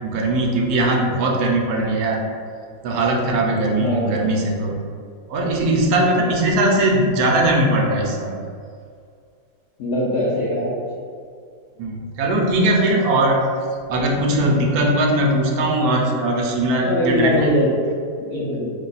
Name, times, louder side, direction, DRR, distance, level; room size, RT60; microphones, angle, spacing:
voice 1, 0.0-2.3 2.8-4.8 5.3-8.3 11.8-13.5 13.9-17.5, right 1 dB, 75° right, -1 dB, 1.0 m, -20 dB
voice 2, 3.7-4.3 6.3-6.4 9.8-10.7 16.7-17.8 18.2-18.7, left 1 dB, 70° left, -7 dB, 0.6 m, -21 dB
2.8 x 2.2 x 3.9 m, 2.2 s
omnidirectional pair, 1.7 m